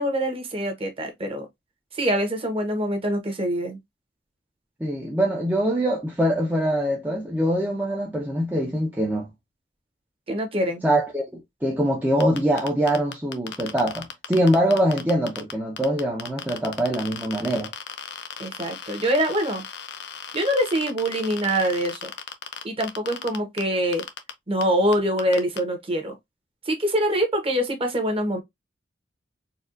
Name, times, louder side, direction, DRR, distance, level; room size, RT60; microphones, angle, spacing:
voice 1, 0.0-1.5 1.9-3.8 10.3-10.8 18.4-19.6 20.3-22.1 22.6-24.0 24.5-26.1 26.7-28.4, equal, 30° right, 1.0 m, -24 dB
voice 2, 4.8-9.3 10.8-17.7, equal, 10° right, 0.6 m, -23 dB
sound 1, 12.2-15.5 15.8-23.6 23.9-24.3 24.6-24.7 24.9-25.6, left 8 dB, 65° left, 0.6 m, -36 dB
4.2 x 2.3 x 2.5 m
head